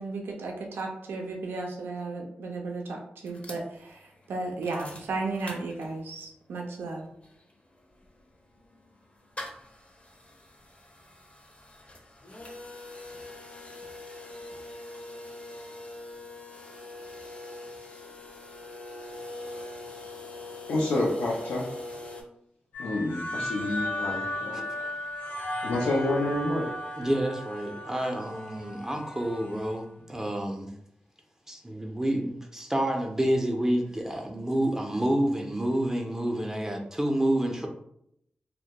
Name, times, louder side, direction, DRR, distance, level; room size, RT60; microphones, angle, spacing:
voice 1, 0.0-4.0 4.3-7.1, right 3 dB, 90° right, 0 dB, 0.3 m, -34 dB
sound 1, 3.3-6.2 6.6-6.7 6.9-22.2, left 2 dB, 35° left, 0.5 m, -43 dB
voice 2, 20.7-21.7 22.8-24.6 25.6-26.7, left 2 dB, 90° left, -5 dB, 0.4 m, -28 dB
sound 2, 22.7-29.8, left 1 dB, 65° left, 0.9 m, -36 dB
voice 3, 27.0-30.7 31.5-37.7, right 1 dB, 15° right, 2 dB, 0.4 m, -28 dB
2.1 x 2.1 x 2.8 m, 0.73 s
cardioid pair, 40°, 4 cm